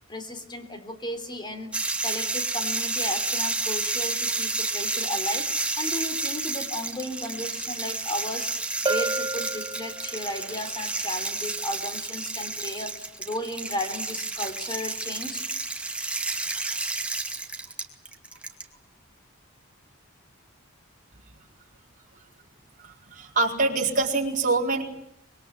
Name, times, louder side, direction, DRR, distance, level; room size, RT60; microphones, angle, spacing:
voice 1, 0.1-15.5 17.6-17.7, left 1 dB, 20° left, 8 dB, 3.6 m, -35 dB
sound 1, 1.7-18.6, right 3 dB, 5° right, 2.4 m, -30 dB
Bell, 8.9-10.4, right 3 dB, 20° right, 1.6 m, -30 dB
voice 2, 22.8-24.8, right 3 dB, 40° right, 1 dB, 4.5 m, -25 dB
25.5 x 22.5 x 9.5 m, 0.74 s
head